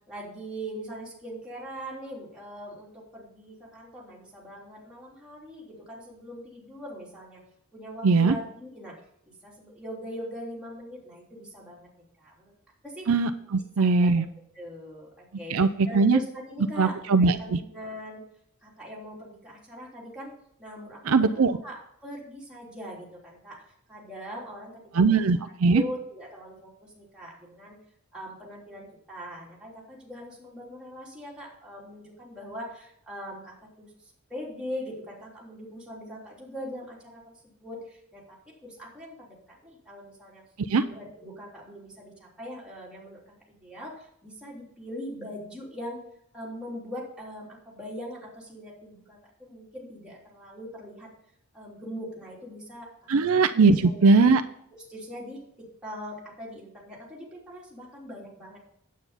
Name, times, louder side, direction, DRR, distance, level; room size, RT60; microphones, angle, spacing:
voice 1, 0.1-7.4 7.7-8.9 9.3-11.9 12.2-12.5 12.8-13.1 13.8-14.2 14.5-18.2 18.6-20.3 20.6-23.6 23.9-25.2 25.7-27.8 28.1-33.9 34.3-38.2 38.6-39.4 39.6-40.4 40.8-43.2 43.5-46.0 46.3-51.1 51.5-52.9 53.3-54.2 54.7-58.6, equal, 5° right, -5 dB, 3.4 m, -41 dB
voice 2, 8.0-8.3 13.1-14.3 15.5-16.2 16.8-17.6 21.1-21.6 24.9-25.8 40.7-40.8 53.1-54.4, right 4 dB, 65° right, 10 dB, 0.5 m, -20 dB
9.3 x 8.5 x 4.1 m, 0.72 s
head